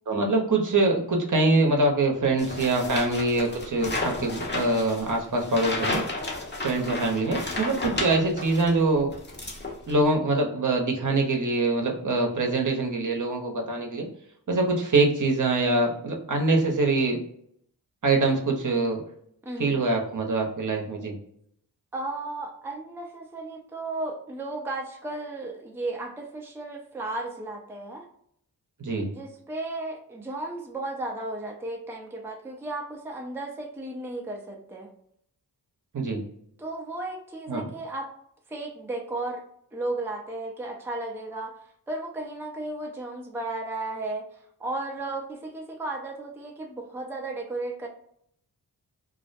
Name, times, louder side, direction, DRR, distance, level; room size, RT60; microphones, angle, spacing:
voice 1, 0.1-6.1 6.6-9.1 9.9-14.1 14.5-17.2 18.0-19.0 19.6-21.1 28.8-29.1 35.9-36.2 37.5-37.7, right 2 dB, 50° right, 2 dB, 0.7 m, -24 dB
sound 1, 2.4-8.8 9.1-10.1, left 2 dB, 25° left, 0.8 m, -32 dB
voice 2, 19.4-19.8 21.9-28.1 29.1-34.9 36.6-38.1 38.5-39.4 39.7-41.6 41.9-47.9, right 2 dB, 5° right, 1 dB, 0.5 m, -34 dB
2.5 x 2.0 x 2.5 m, 0.69 s
cardioid pair, 45°, 40 cm